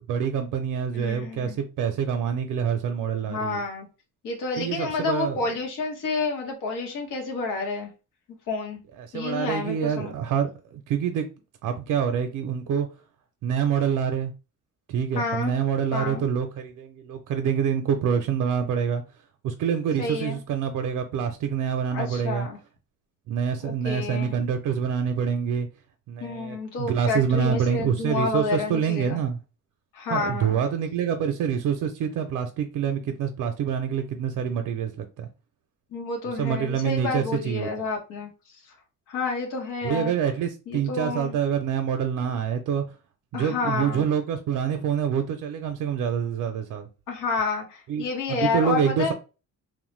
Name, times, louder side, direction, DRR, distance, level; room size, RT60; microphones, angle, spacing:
voice 1, 0.1-3.6 4.6-5.4 9.0-11.3 11.6-12.9 13.4-14.3 14.9-19.0 19.4-22.5 23.3-25.7 26.1-29.4 30.1-35.3 36.4-37.7 39.8-42.8 43.3-46.9 47.9-49.1, right 7 dB, 80° right, 0.5 m, -26 dB
voice 2, 0.9-1.6 3.2-3.9 4.2-7.9 8.5-8.8 9.1-10.1 15.1-15.5 15.9-16.3 20.0-20.4 21.9-22.6 23.6-24.3 26.2-29.2 29.9-30.6 35.9-38.3 39.1-40.1 40.7-41.3 43.3-44.1 47.1-49.1, left 4 dB, 90° left, 1.0 m, -29 dB
3.0 x 2.1 x 3.1 m
cardioid pair, 140°, 31 cm